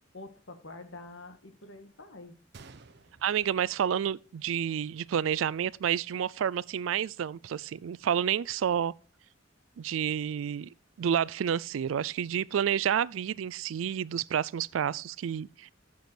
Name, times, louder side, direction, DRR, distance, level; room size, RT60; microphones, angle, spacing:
voice 1, 0.1-2.4, left 2 dB, 80° left, 1.5 m, -46 dB
Gunshot gunfire, 2.5-4.6 4.8-4.9 5.6-5.8, right 4 dB, 60° right, 0.7 m, -54 dB
voice 2, 3.2-8.9 9.8-10.7 11.0-15.7, right 9 dB, 90° right, 0.3 m, -29 dB
9.1 x 7.0 x 4.4 m
head